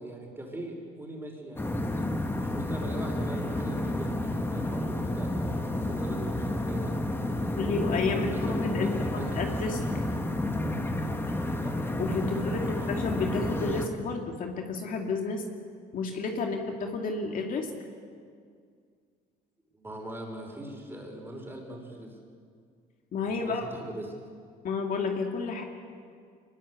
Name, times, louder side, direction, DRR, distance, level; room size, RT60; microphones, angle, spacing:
voice 1, 0.0-1.8 2.3-6.9 7.5-9.4 11.4-11.7 12.2-12.9 19.7-22.2 23.4-24.1, right 1 dB, 15° right, 1 dB, 5.6 m, -41 dB
sound 1, 1.6-13.9, left 1 dB, 15° left, 2.0 m, -30 dB
voice 2, 7.6-9.8 12.0-15.4 15.9-17.7 23.1-23.6 24.6-25.6, left 4 dB, 55° left, 2 dB, 2.5 m, -31 dB
23.0 x 21.0 x 8.4 m, 2.1 s
cardioid pair, 110°, 17 cm